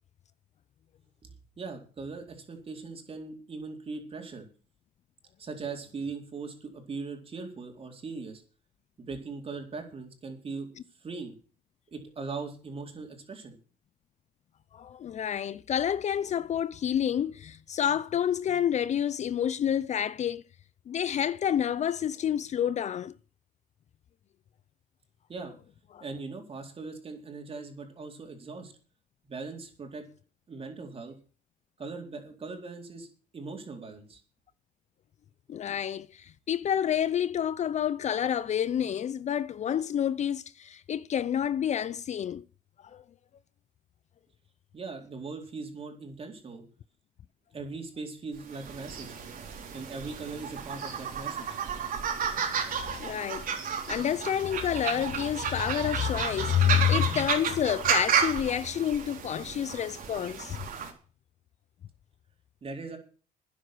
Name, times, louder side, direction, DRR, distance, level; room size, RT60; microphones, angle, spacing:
voice 1, 1.2-4.5 5.4-8.4 9.0-10.7 11.0-11.3 11.9-13.6 25.3-25.6 26.0-28.7 29.2-30.0 30.5-31.1 31.8-33.1 33.3-34.2 44.7-46.6 47.5-49.1 49.7-51.6 62.6-63.0, right 4 dB, 35° right, 4.2 m, -40 dB
voice 2, 14.7-20.4 20.9-23.1 25.9-26.0 35.5-42.4 42.9-43.0 53.0-53.5 53.9-60.6, left 9 dB, 45° left, 0.5 m, -28 dB
sound 1, 48.5-60.9, right 7 dB, 55° right, 3.8 m, -32 dB
13.0 x 10.0 x 6.1 m
cardioid pair, 110°, 17 cm